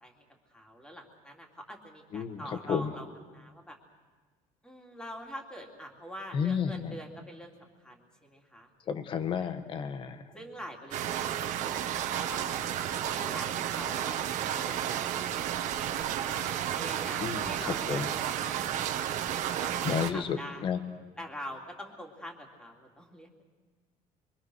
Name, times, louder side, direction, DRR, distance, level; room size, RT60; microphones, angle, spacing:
voice 1, 0.0-3.1 3.3-3.8 4.6-8.7 9.3-9.5 10.3-11.9 12.3-12.5 13.1-14.2 15.8-18.5 18.8-20.7 21.2-23.4, equal, 5° left, 1 dB, 3.3 m, -45 dB
voice 2, 6.3-6.9 8.9-10.2 17.2-18.1 19.8-20.8, left 7 dB, 35° left, 9 dB, 1.7 m, -31 dB
sound 1, 10.9-20.1, right 10 dB, 60° right, 1.6 m, -32 dB
26.5 x 24.5 x 6.5 m, 1.4 s
cardioid pair, 160°, 14 cm